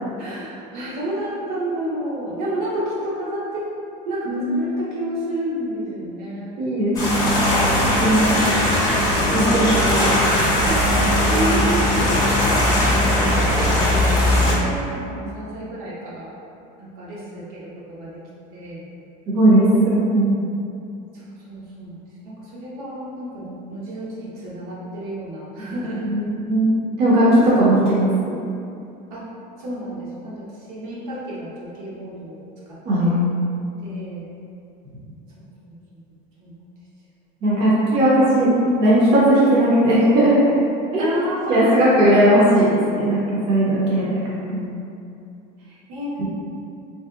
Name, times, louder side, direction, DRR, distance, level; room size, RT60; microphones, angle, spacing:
voice 1, 0.2-3.7 4.0-6.5 8.2-9.0 10.7-16.3 16.8-18.2 18.5-18.9 21.1-26.0 29.1-29.3 29.6-33.2 33.8-34.3 35.4-36.0 36.4-36.5 41.0-42.4 45.6-46.2, right 1 dB, 70° right, -7 dB, 0.9 m, -31 dB
voice 2, 4.3-4.6 6.6-7.4 7.8-8.4 9.3-9.8 19.3-20.4 26.0-28.4 32.9-33.4 37.4-40.4 40.9-41.1 41.5-44.2 44.5-44.7 46.2-46.3, right 1 dB, 30° right, -8 dB, 0.5 m, -18 dB
sound 1, 6.9-14.5, left 1 dB, 20° left, 0.5 m, -19 dB
3.3 x 2.6 x 2.3 m, 2.6 s
cardioid pair, 170°, 20 cm